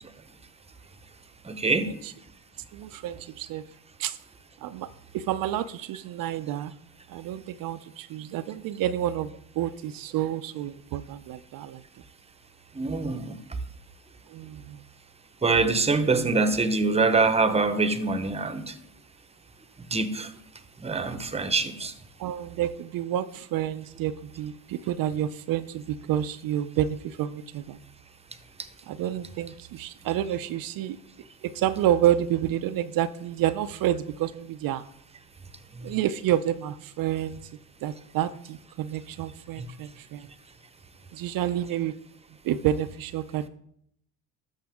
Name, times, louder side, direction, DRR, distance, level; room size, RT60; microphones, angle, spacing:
voice 1, 1.4-1.9 12.7-13.4 15.4-18.8 19.9-20.3 20.8-21.9 35.7-35.9 39.6-39.7, right 3 dB, 15° right, 0.9 m, -24 dB
voice 2, 2.7-3.6 4.0-4.2 4.6-6.7 7.1-11.8 14.3-14.8 22.2-27.8 28.9-31.0 31.4-34.9 35.8-37.4 37.8-40.3 41.1-41.9 42.4-43.5, right 11 dB, 55° right, 0.6 m, -29 dB
13.0 x 5.8 x 3.5 m
supercardioid pair, 80°, 42 cm